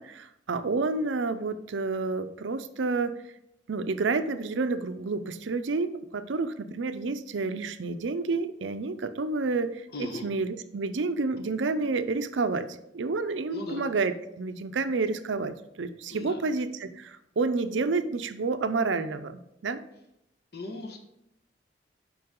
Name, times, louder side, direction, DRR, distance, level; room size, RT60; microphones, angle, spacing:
voice 1, 0.0-3.2 3.7-19.8, right 3 dB, 80° right, 10 dB, 0.5 m, -29 dB
voice 2, 9.9-10.3 13.5-13.8 16.1-16.4 20.5-21.0, left 2 dB, 55° left, 3 dB, 1.2 m, -37 dB
7.7 x 5.3 x 3.7 m, 0.82 s
head